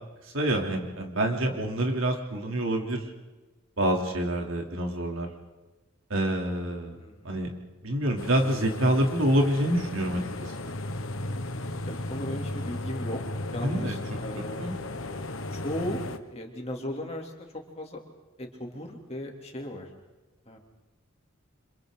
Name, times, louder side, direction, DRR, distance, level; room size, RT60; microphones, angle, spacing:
voice 1, 0.3-3.0 3.8-5.3 6.1-7.0 7.2-7.5 7.8-10.7 13.6-14.0 14.6-14.8, right 1 dB, 70° right, 2 dB, 3.2 m, -27 dB
voice 2, 6.9-7.4 11.9-13.2 13.5-14.7 15.5-16.0 16.3-17.3 17.8-18.0 18.4-19.9 20.5-20.6, left 1 dB, 30° left, 1 dB, 2.9 m, -36 dB
sound 1, 8.2-16.2, left 2 dB, 70° left, 1.3 m, -35 dB
29.5 x 26.0 x 3.9 m, 1.2 s
head